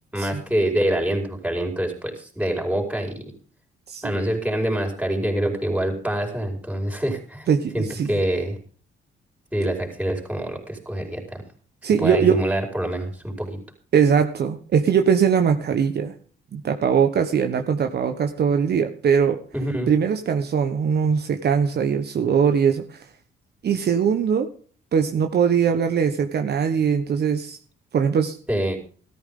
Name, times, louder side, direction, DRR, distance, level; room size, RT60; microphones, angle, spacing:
voice 1, 0.1-3.2 4.0-7.5 7.7-8.6 9.5-11.4 12.0-13.6 19.5-19.9 28.5-28.8, right 1 dB, 5° right, 3 dB, 4.9 m, -25 dB
voice 2, 7.5-8.1 11.8-12.4 13.9-16.1 16.5-19.4 19.9-23.0 23.6-24.5 24.9-27.6 27.9-28.3, right 7 dB, 55° right, 6 dB, 1.3 m, -21 dB
14.5 x 13.0 x 3.8 m, 0.43 s
cardioid pair, 90°, 20 cm